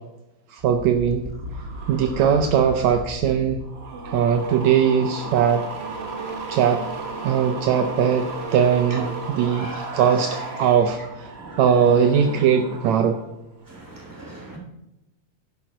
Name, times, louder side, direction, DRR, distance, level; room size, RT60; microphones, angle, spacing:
voice 1, 0.5-1.3 1.9-5.6 6.5-6.8 7.2-13.2, right 8 dB, 75° right, 6 dB, 1.9 m, -20 dB
sound 1, 0.6-13.3 13.6-14.0, right 3 dB, 55° right, 0.7 m, -34 dB
voice 2, 13.8-14.6, right 1 dB, 5° right, -2 dB, 3.0 m, -38 dB
11.0 x 10.5 x 3.9 m, 0.91 s
omnidirectional pair, 3.4 m